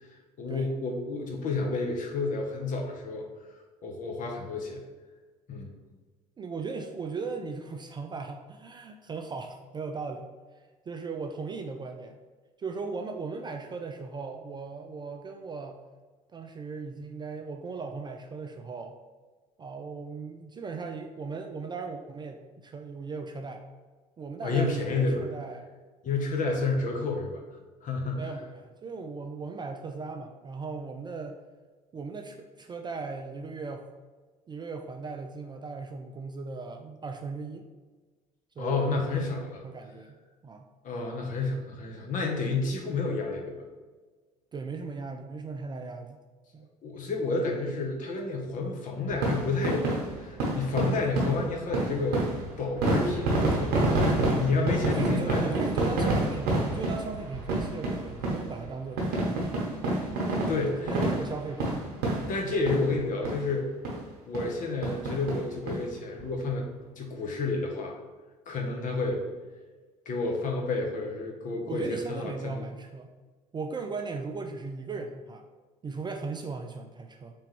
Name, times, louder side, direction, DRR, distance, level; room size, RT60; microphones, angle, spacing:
voice 1, 0.4-3.3 3.8-4.8 5.5-5.7 24.4-25.2 26.0-27.4 27.8-28.3 38.6-39.6 40.8-43.6 46.8-52.2 52.6-55.5 60.5-60.9 62.3-63.8 64.3-66.7 67.0-67.9 68.5-69.2 70.1-72.6, left 3 dB, 45° left, 1 dB, 0.9 m, -30 dB
voice 2, 6.4-10.3 10.9-12.2 12.6-15.8 16.3-19.0 19.6-23.6 24.2-25.7 28.0-31.4 31.9-33.9 34.5-37.7 38.6-39.1 39.6-40.2 40.4-40.7 41.5-41.6 44.5-46.2 46.5-46.7 54.8-59.6 60.4-61.8 71.7-73.1 73.5-75.5 75.8-77.3, right 4 dB, 25° right, 4 dB, 0.3 m, -37 dB
sound 1, 49.1-63.0 63.3-63.4 63.8-64.0 64.3-64.5 64.8-65.8 66.2-66.3 66.5-66.6, right 2 dB, 55° right, 1.0 m, -28 dB
3.4 x 3.3 x 3.1 m, 1.3 s
hypercardioid pair, 60°, 19 cm